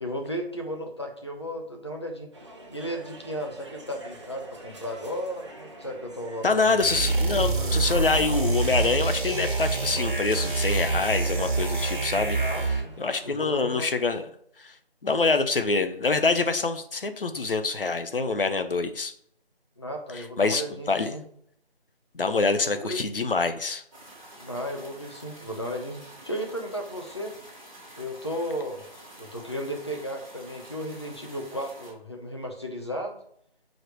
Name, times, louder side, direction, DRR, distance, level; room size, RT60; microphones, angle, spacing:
voice 1, 0.0-2.3 2.7-6.8 12.4-12.9 13.2-13.9 19.8-21.2 22.8-23.0 24.4-27.3 28.0-28.8 29.2-33.2, equal, 25° left, 2 dB, 0.7 m, -34 dB
sound 1, 2.3-13.4, right 1 dB, 30° right, 0.9 m, -47 dB
voice 2, 6.4-12.4 13.0-14.2 14.6-14.7 15.0-19.1 20.4-20.6 20.9-21.1 22.1-23.8, left 4 dB, 60° left, 8 dB, 0.8 m, -25 dB
sound 2, 6.8-12.9, right 3 dB, 50° right, 1.4 m, -26 dB
sound 3, 23.9-31.9, right 1 dB, 5° right, 1.7 m, -48 dB
7.2 x 5.2 x 3.0 m, 0.67 s
figure-of-eight pair, 165°, 31 cm